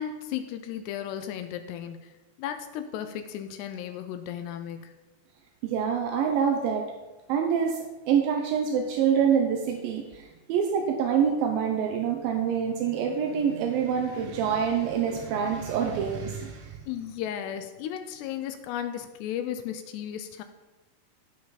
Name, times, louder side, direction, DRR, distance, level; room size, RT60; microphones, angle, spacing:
voice 1, 0.0-4.9 16.9-20.4, left 10 dB, 80° left, 9 dB, 2.6 m, -35 dB
voice 2, 5.6-6.9 7.3-16.8, right 7 dB, 80° right, 3 dB, 2.1 m, -26 dB
15.0 x 5.5 x 4.1 m, 1.1 s
omnidirectional pair, 5.1 m